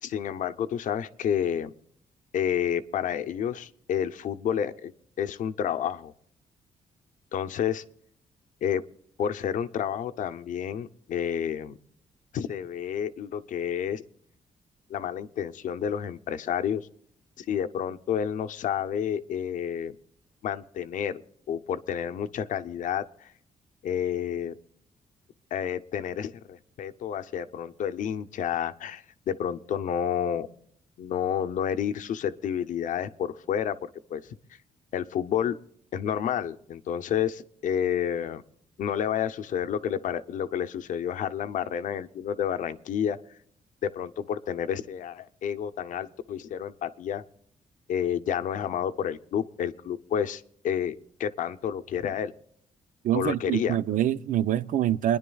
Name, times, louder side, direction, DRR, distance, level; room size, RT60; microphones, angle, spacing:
voice 1, 0.0-1.7 2.3-4.9 5.2-6.1 7.3-7.8 8.6-8.8 9.2-11.8 12.3-14.0 14.9-16.9 17.4-20.0 20.4-21.2 21.5-23.3 23.8-24.5 25.5-30.5 31.0-34.2 34.9-35.6 35.9-38.4 38.8-43.2 43.8-47.2 47.9-52.3 53.1-53.8, left 9 dB, 70° left, 0.7 m, -30 dB
voice 2, 53.0-55.2, right 11 dB, 75° right, 0.5 m, -25 dB
29.0 x 10.5 x 2.3 m
cardioid pair, 140°, 14 cm